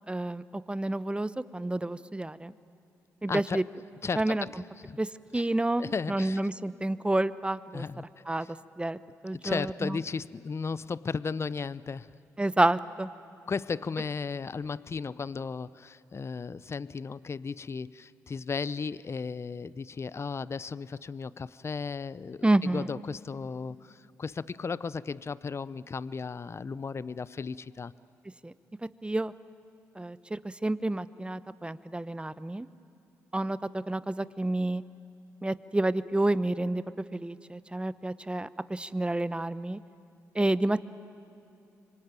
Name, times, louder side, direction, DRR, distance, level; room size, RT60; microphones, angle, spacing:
voice 1, 0.1-2.5 3.2-3.6 4.2-4.4 5.0-5.1 5.3-7.8 8.3-8.5 8.8-9.0 9.2-10.0 12.4-13.1 22.4-22.9 28.4-28.5 29.0-29.3 30.0-32.7 33.3-34.8 35.4-36.8 37.1-39.8 40.3-41.0, right 2 dB, 15° right, 15 dB, 0.9 m, -29 dB
voice 2, 3.3-3.6 4.0-5.0 5.3-5.5 5.8-6.4 7.7-8.0 8.4-8.5 9.4-12.1 13.5-27.9, left 5 dB, 35° left, 19 dB, 0.6 m, -35 dB
26.0 x 25.0 x 9.1 m, 2.8 s
hypercardioid pair, 45°, 7 cm